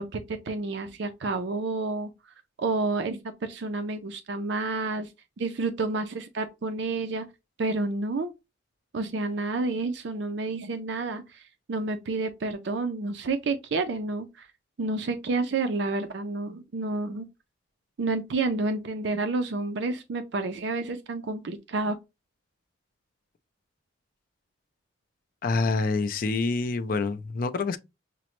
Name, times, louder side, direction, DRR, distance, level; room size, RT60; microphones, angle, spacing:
voice 1, 0.0-2.1 2.6-5.1 5.4-7.3 7.6-8.3 8.9-11.4 11.7-14.5 14.8-17.3 18.0-22.0, right 3 dB, 60° right, 0.4 m, -29 dB
voice 2, 25.4-27.8, left 3 dB, 45° left, 0.3 m, -26 dB
5.9 x 2.1 x 2.9 m
head